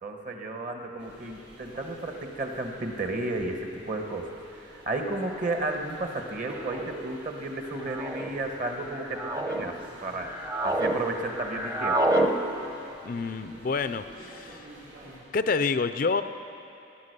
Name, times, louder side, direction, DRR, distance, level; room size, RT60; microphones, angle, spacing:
voice 1, 0.0-10.3 10.6-12.1, right 2 dB, 40° right, 3 dB, 1.3 m, -33 dB
sound 1, 1.0-15.2, right 1 dB, 80° right, 4.4 m, -49 dB
sound 2, 4.2-4.3 5.4-5.6 6.6-7.0 7.8-8.3 8.9-9.6 10.1-11.0 11.2-12.3, right 1 dB, 15° right, 0.8 m, -28 dB
voice 2, 13.0-14.6 15.3-16.2, left 4 dB, 45° left, 11 dB, 0.4 m, -28 dB
17.5 x 10.5 x 6.7 m, 2.7 s
head